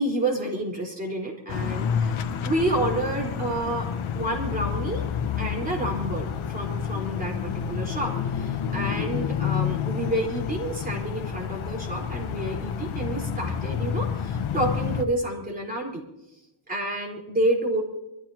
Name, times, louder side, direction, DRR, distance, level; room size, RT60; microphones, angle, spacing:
voice 1, 0.0-3.9 4.1-5.0 5.4-16.0 16.7-17.8, right 1 dB, 15° right, -1 dB, 4.5 m, -29 dB
sound 1, 1.5-15.0, left 7 dB, 75° left, 1.2 m, -29 dB
24.5 x 14.0 x 3.0 m, 0.92 s
cardioid pair, 135°, 50 cm